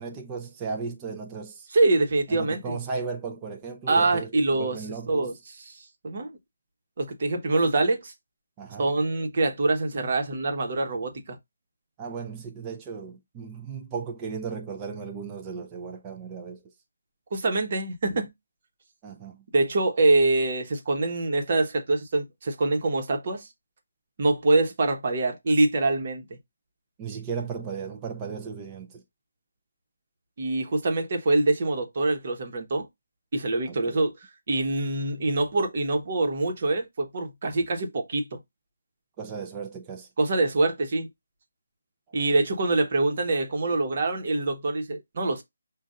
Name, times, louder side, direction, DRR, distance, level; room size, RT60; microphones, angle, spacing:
voice 1, 0.0-1.7 2.3-5.3 8.6-8.9 12.0-16.6 19.0-19.4 27.0-29.0 33.6-34.0 39.2-40.1, right 5 dB, 20° right, 0.6 m, -36 dB
voice 2, 1.7-2.8 3.9-4.8 5.1-5.3 6.0-6.4 7.0-8.1 8.8-11.4 17.3-18.3 19.5-23.5 24.2-26.4 30.4-32.9 33.3-34.1 34.5-38.4 40.2-41.1 42.1-45.4, right 2 dB, 45° right, 1.1 m, -24 dB
6.2 x 2.5 x 2.5 m
figure-of-eight pair, 155°, 0 cm